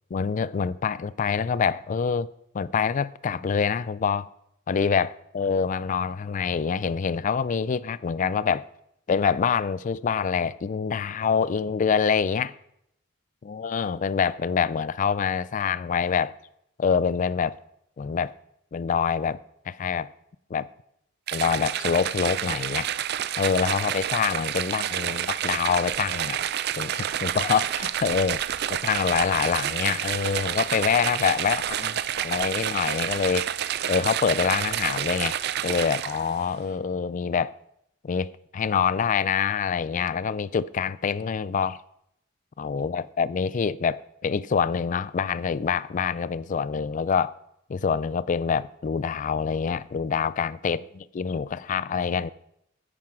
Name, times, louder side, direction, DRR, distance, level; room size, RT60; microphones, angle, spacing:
voice 1, 0.1-2.3 2.5-4.3 4.7-8.7 9.1-12.5 13.4-16.3 16.8-17.6 18.0-18.3 18.7-19.4 19.7-20.1 20.5-20.7 21.3-22.9 23.4-26.5 26.8-28.4 28.8-33.5 33.9-35.4 35.6-37.5 38.0-41.8 42.6-47.4 47.7-52.3, left 6 dB, 40° left, 0.3 m, -26 dB
sound 1, 21.3-36.4, right 10 dB, 55° right, 0.4 m, -29 dB
9.6 x 9.0 x 4.8 m
head